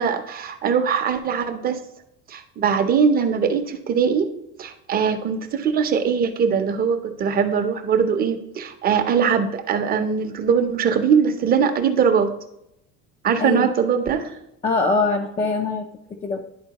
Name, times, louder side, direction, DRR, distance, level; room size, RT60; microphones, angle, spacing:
voice 1, 0.0-1.8 2.3-4.3 4.6-12.3 13.2-14.3, right 6 dB, 30° right, 7 dB, 0.6 m, -21 dB
voice 2, 13.4-13.7 14.6-16.4, left 3 dB, 20° left, 2 dB, 0.4 m, -23 dB
11.0 x 4.3 x 2.9 m, 0.83 s
cardioid pair, 165°, 32 cm